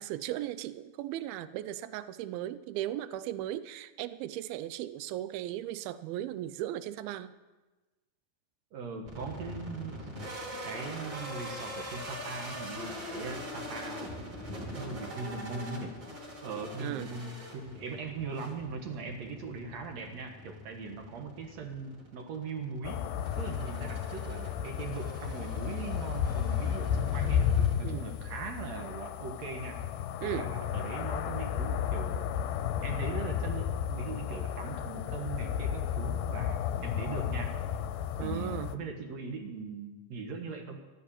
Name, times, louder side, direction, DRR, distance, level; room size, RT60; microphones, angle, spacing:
voice 1, 0.0-7.3 16.8-17.1 27.8-28.1 30.2-30.5 38.2-38.8, right 13 dB, 80° right, 14 dB, 2.4 m, -37 dB
voice 2, 8.7-10.1 10.6-14.1 14.8-16.0 16.4-23.0 23.4-27.5 27.8-29.8 30.2-32.2 32.8-37.6 38.2-40.8, right 4 dB, 55° right, 4 dB, 2.1 m, -40 dB
sound 1, 9.1-28.3, equal, 30° right, 3.6 m, -44 dB
sound 2, 22.8-38.8, left 8 dB, 80° left, 2.4 m, -33 dB
14.0 x 9.9 x 8.8 m, 1.2 s
omnidirectional pair, 4.6 m